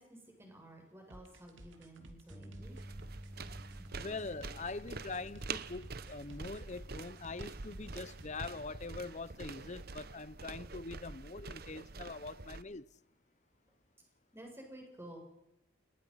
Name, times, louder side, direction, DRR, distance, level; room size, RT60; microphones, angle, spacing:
voice 1, 0.0-2.8 3.7-3.9 14.3-15.2, right 1 dB, 15° right, 7.7 m, -53 dB
sound 1, 1.1-8.7, right 1 dB, 70° right, 3.0 m, -55 dB
Bass guitar, 2.3-8.5, right 1 dB, 10° left, 6.6 m, -53 dB
sound 2, 2.6-12.6, right 4 dB, 50° right, 1.0 m, -46 dB
voice 2, 3.9-12.9, left 3 dB, 35° left, 0.8 m, -43 dB
29.0 x 21.0 x 5.9 m
head